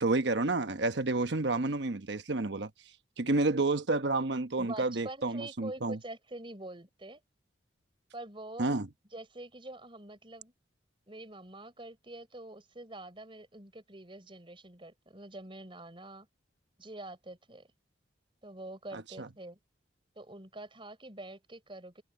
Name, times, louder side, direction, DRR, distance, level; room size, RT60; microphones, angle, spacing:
voice 1, 0.0-2.7 3.2-6.0 8.6-8.9 18.9-19.3, right 2 dB, 65° right, 1.1 m, -30 dB
voice 2, 4.6-7.2 8.1-8.8 9.1-10.5 11.1-16.3 16.8-17.7 18.4-19.6 20.2-22.0, right 2 dB, 30° right, 4.2 m, -45 dB
open air
head